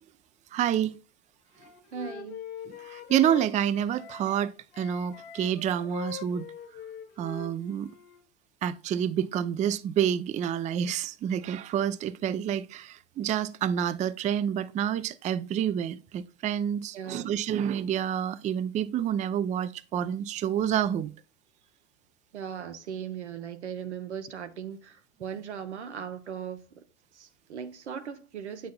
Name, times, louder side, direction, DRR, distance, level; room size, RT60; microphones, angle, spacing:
voice 1, 0.5-1.0 2.7-6.5 7.2-7.9 8.6-21.1, right 9 dB, 25° right, 0.4 m, -28 dB
Wind instrument woodwind instrument, 1.6-4.5 4.7-8.2, left 10 dB, 55° left, 1.6 m, -43 dB
voice 2, 1.9-2.4 16.9-17.3 22.3-26.8 27.1-28.7, right 8 dB, 90° right, 0.9 m, -38 dB
8.3 x 6.1 x 2.2 m
hypercardioid pair, 90°, 33 cm